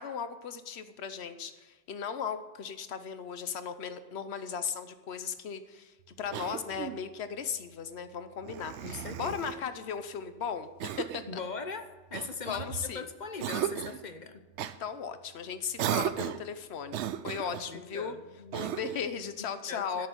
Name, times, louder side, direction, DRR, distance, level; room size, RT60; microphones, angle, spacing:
voice 1, 0.0-11.4 12.4-13.0 14.6-18.2 18.5-20.1, left 7 dB, 65° left, 10 dB, 1.1 m, -37 dB
Cough, 6.3-7.1 8.4-9.6 10.8-11.3 12.1-12.9 13.4-14.0 14.6-14.8 15.8-16.5 16.9-17.7 18.5-19.1, right 10 dB, 75° right, 0.9 m, -35 dB
voice 2, 8.8-9.7 11.3-11.8 12.1-14.4 17.4-18.6 19.7-20.1, left 4 dB, 40° left, 8 dB, 0.9 m, -41 dB
13.0 x 6.6 x 9.2 m, 1.2 s
omnidirectional pair, 1.2 m